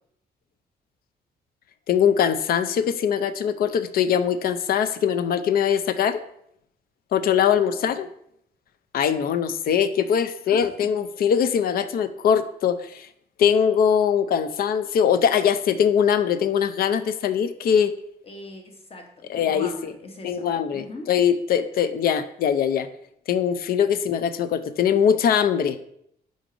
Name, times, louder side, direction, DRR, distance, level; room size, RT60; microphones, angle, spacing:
voice 1, 1.9-6.2 7.1-8.1 8.9-13.1 13.4-17.9 19.3-19.9 20.2-22.9 23.3-25.8, left 8 dB, 65° left, 11 dB, 0.5 m, -22 dB
voice 2, 10.5-10.9 18.2-19.1 19.3-21.1, left 2 dB, 35° left, 3 dB, 1.2 m, -41 dB
5.2 x 3.8 x 4.9 m, 0.71 s
cardioid pair, 110°, 17 cm